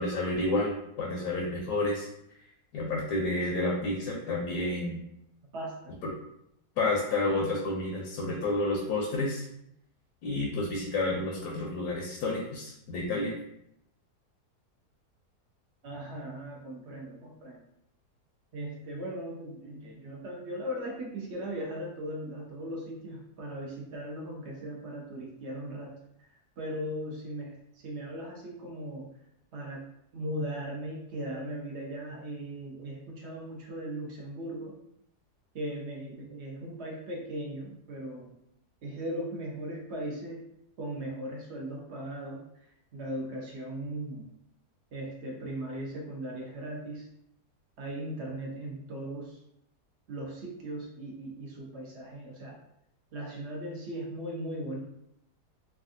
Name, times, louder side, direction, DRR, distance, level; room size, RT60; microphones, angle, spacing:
voice 1, 0.0-2.1 2.7-5.0 6.8-9.5 10.2-13.4, left 2 dB, 80° left, -2 dB, 1.2 m, -30 dB
voice 2, 5.5-5.9 15.8-17.6 18.5-25.9 26.6-27.6 27.8-29.1 29.5-29.8 30.1-34.8 35.5-38.4 38.8-40.4 40.8-42.4 42.9-44.3 44.9-47.1 47.8-49.4 50.1-52.6 53.1-54.8, right 1 dB, 60° right, -1 dB, 0.7 m, -38 dB
3.4 x 2.3 x 2.5 m, 0.77 s
omnidirectional pair, 1.7 m